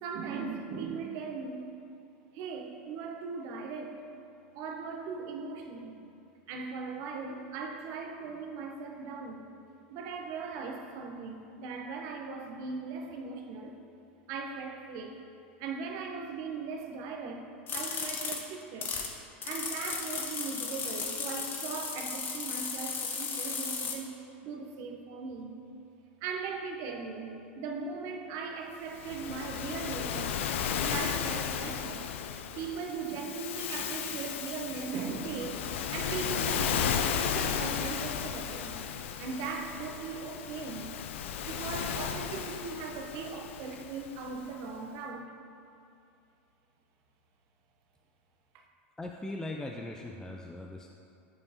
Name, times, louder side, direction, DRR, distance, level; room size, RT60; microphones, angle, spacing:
voice 1, 0.0-1.7 2.3-4.0 4.5-6.0 6.5-9.5 9.9-13.8 14.3-15.1 15.6-17.5 17.7-18.9 19.4-24.2 24.4-25.6 26.2-30.4 30.8-32.1 32.6-35.6 35.9-38.8 39.2-40.9 41.2-45.3 48.5-48.6, right 5 dB, 55° right, 2 dB, 0.9 m, -39 dB
sound 1, 17.7-19.1 19.4-24.0, left 5 dB, 30° left, 0.8 m, -35 dB
Waves surf, 28.9-44.4, left 8 dB, 80° left, 0.4 m, -34 dB
voice 2, 49.0-50.9, left 2 dB, 10° left, 1 dB, 0.4 m, -39 dB
9.4 x 4.7 x 2.8 m, 2.5 s
hypercardioid pair, 110°, 7 cm